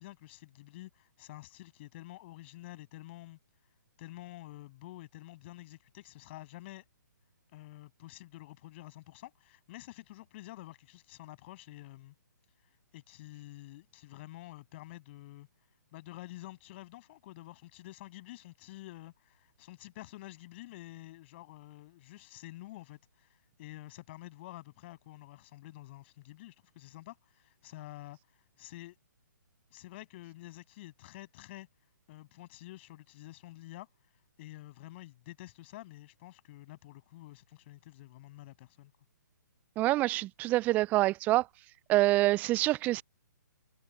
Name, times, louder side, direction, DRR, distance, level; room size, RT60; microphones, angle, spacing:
voice 1, 0.0-3.4 4.0-6.8 7.5-12.1 12.9-15.5 15.9-28.2 28.6-29.0 29.7-31.7 32.1-33.9 34.4-38.9, left 17 dB, 35° left, 7.8 m, -49 dB
voice 2, 39.8-41.5 41.9-43.0, right 17 dB, 15° right, 0.4 m, -26 dB
figure-of-eight pair, 130°, 11 cm